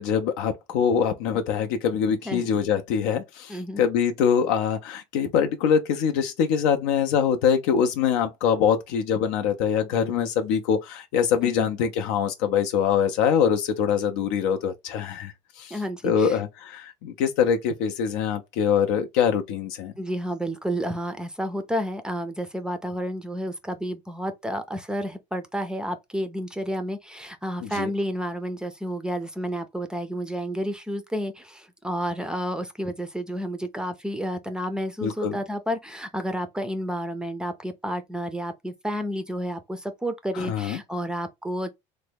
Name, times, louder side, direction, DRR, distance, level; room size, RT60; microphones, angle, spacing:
voice 1, 0.0-15.8 16.0-19.9 27.6-27.9 35.0-35.4 40.3-40.8, left 7 dB, 85° left, 0.5 m, -24 dB
voice 2, 3.5-3.8 11.6-11.7 15.7-16.4 20.0-41.7, equal, 5° right, 0.4 m, -30 dB
3.2 x 2.1 x 3.3 m
cardioid pair, 135°, 15 cm